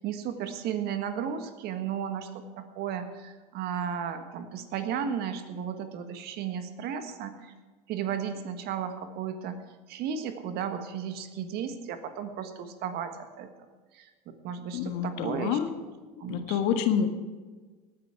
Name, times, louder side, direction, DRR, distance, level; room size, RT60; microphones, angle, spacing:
voice 1, 0.0-7.5 7.9-9.6 9.9-13.5 13.9-15.9 16.2-16.6, right 8 dB, 50° right, 8 dB, 1.5 m, -34 dB
voice 2, 14.7-15.7 16.3-17.1, left 8 dB, 60° left, 7 dB, 1.5 m, -27 dB
18.5 x 9.8 x 4.7 m, 1.3 s
hypercardioid pair, 80°, 20 cm